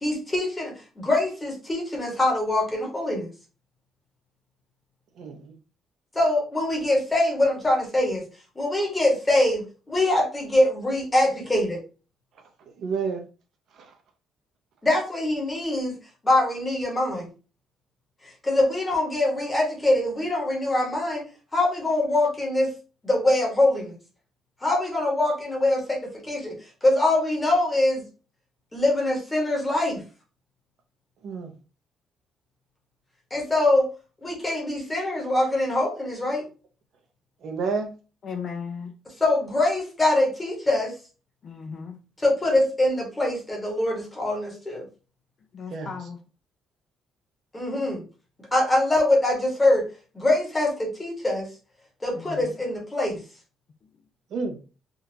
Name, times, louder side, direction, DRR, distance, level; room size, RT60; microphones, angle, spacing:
voice 1, 0.0-3.3 6.1-8.2 8.5-11.8 14.8-15.9 16.2-17.3 18.4-21.2 21.5-22.7 23.0-23.9 24.6-26.5 26.8-28.0 28.7-30.0 33.3-33.9 34.2-36.4 39.2-40.9 42.2-44.8 47.5-48.0 48.5-49.8 50.1-51.5 52.0-53.2, left 1 dB, 10° left, -2 dB, 1.2 m, -23 dB
voice 2, 5.2-5.5 12.8-13.2 31.2-31.5 37.4-37.9 45.7-45.9 54.3-54.6, right 5 dB, 55° right, 5 dB, 0.6 m, -29 dB
voice 3, 38.2-38.9 41.4-42.0 45.5-46.2 52.2-52.5, left 6 dB, 40° left, 5 dB, 0.4 m, -36 dB
3.7 x 2.4 x 2.7 m, 0.35 s
cardioid pair, 170°, 0 cm